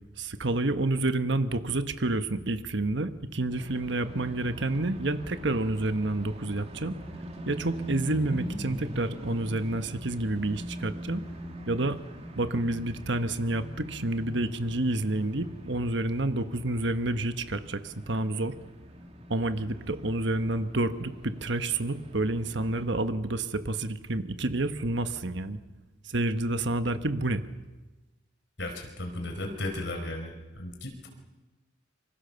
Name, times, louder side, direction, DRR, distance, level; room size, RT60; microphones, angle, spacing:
voice 1, 0.2-7.0 7.4-11.2 11.7-12.0 12.4-18.5 19.3-25.6 26.0-27.4, right 2 dB, 60° right, 10 dB, 1.3 m, -29 dB
sound 1, 3.5-22.9, equal, 30° right, 2.3 m, -43 dB
voice 2, 28.6-31.1, left 1 dB, 60° left, 3 dB, 4.7 m, -35 dB
26.5 x 25.0 x 6.9 m, 1.2 s
head